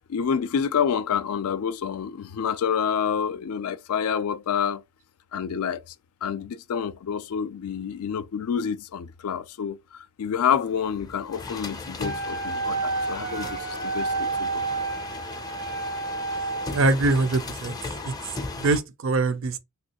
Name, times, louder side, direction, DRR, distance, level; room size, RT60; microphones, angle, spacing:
voice 1, 0.1-4.8 5.3-5.9 6.2-14.6, left 7 dB, 85° left, 0.4 m, -28 dB
sound 1, 10.6-18.8, left 3 dB, 20° left, 0.4 m, -37 dB
Wind instrument woodwind instrument, 12.0-16.8, right 3 dB, 90° right, 1.3 m, -30 dB
voice 2, 16.7-17.8 18.0-18.1 18.6-19.6, right 3 dB, 60° right, 0.4 m, -23 dB
3.1 x 2.9 x 2.8 m
head